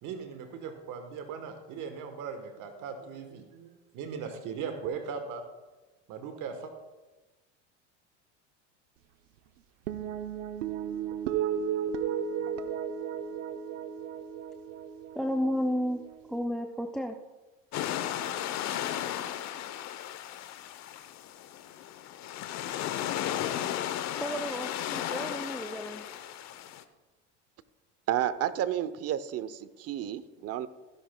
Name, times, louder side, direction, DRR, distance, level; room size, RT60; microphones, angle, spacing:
voice 1, 0.0-5.4 6.1-6.7, right 6 dB, 55° right, 7 dB, 1.3 m, -39 dB
sound 1, 9.9-16.4, right 8 dB, 90° right, 0.7 m, -34 dB
voice 2, 15.2-16.0 16.3-17.2 24.1-26.1, equal, ahead, 6 dB, 0.4 m, -32 dB
sound 2, 17.7-26.8, left 11 dB, 45° left, 0.8 m, -35 dB
voice 3, 28.1-30.7, right 11 dB, 40° right, 15 dB, 0.7 m, -31 dB
15.5 x 11.0 x 2.2 m, 1.2 s
supercardioid pair, 95°, 37 cm